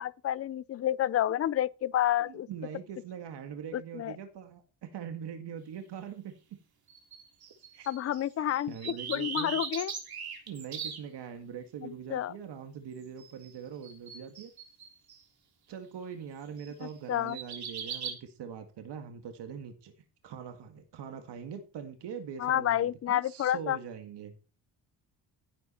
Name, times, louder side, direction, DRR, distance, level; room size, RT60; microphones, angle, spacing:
voice 1, 0.0-2.5 3.7-4.2 7.9-9.9 11.8-12.3 17.1-17.4 22.4-23.8, left 11 dB, 35° left, 0.5 m, -29 dB
voice 2, 2.2-6.3 7.7-7.9 8.7-9.6 10.5-14.5 15.7-19.9 20.2-24.3, right 7 dB, 75° right, 1.9 m, -42 dB
sound 1, 6.9-8.2 8.5-11.0 13.2-13.5 13.8-15.2 16.6-16.9 17.3-18.1, right 6 dB, 60° right, 3.5 m, -39 dB
15.0 x 8.0 x 4.4 m
cardioid pair, 130°, 42 cm